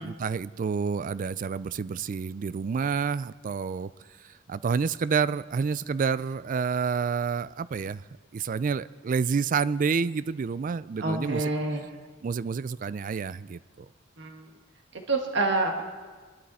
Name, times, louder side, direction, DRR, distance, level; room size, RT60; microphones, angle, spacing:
voice 1, 0.0-3.9 4.2-8.0 8.3-11.5 12.2-13.9, right 5 dB, 45° right, 16 dB, 0.3 m, -29 dB
voice 2, 11.0-11.8 14.2-14.4 14.9-15.8, right 2 dB, 65° right, 2 dB, 1.7 m, -28 dB
24.0 x 11.5 x 4.2 m, 1.4 s
head